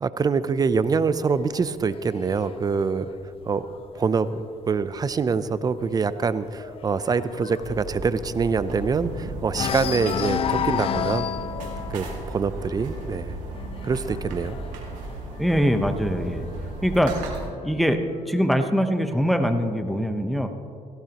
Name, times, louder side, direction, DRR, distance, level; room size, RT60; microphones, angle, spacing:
voice 1, 0.0-3.1 3.5-3.6 3.9-11.3 11.9-13.4 13.8-14.6, right 5 dB, 30° right, 14 dB, 0.6 m, -25 dB
sound 1, 0.8-4.4 4.8-5.1 5.4-5.5 5.9-9.1 9.5-16.0 16.9-17.9, left 9 dB, 45° left, 0.4 m, -32 dB
sound 2, 7.6-17.5, right 2 dB, 80° right, 2.2 m, -36 dB
voice 2, 15.4-16.5 16.8-17.1 17.6-18.0 18.3-20.5, equal, ahead, 6 dB, 1.0 m, -22 dB
17.5 x 16.5 x 3.0 m, 2.4 s
cardioid pair, 95°, 13 cm